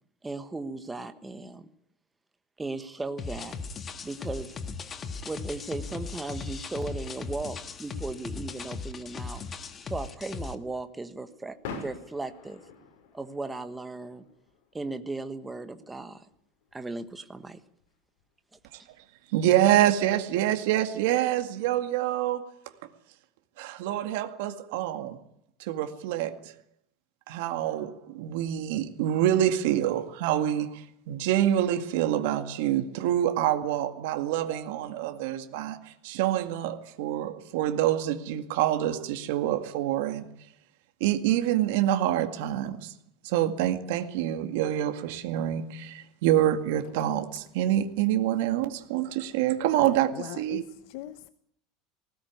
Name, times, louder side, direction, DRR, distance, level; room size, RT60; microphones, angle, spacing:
voice 1, 0.2-1.7 2.6-3.5 4.0-4.5 5.2-9.4 9.8-12.6 13.1-14.3 14.7-16.3 16.7-17.6, right 3 dB, 10° right, 9 dB, 1.3 m, -36 dB
sound 1, 3.2-10.6, left 4 dB, 20° left, 1.5 m, -38 dB
sound 2, 7.8-19.0, left 4 dB, 75° left, 6.3 m, -49 dB
voice 2, 19.3-22.5 23.6-25.2 25.6-26.5 27.3-40.3 41.0-42.9 43.2-50.6, right 12 dB, 70° right, 7 dB, 2.1 m, -26 dB
voice 3, 50.1-51.3, left 14 dB, 60° left, 12 dB, 1.0 m, -40 dB
19.5 x 17.5 x 9.5 m, 0.67 s
cardioid pair, 170°, 0 cm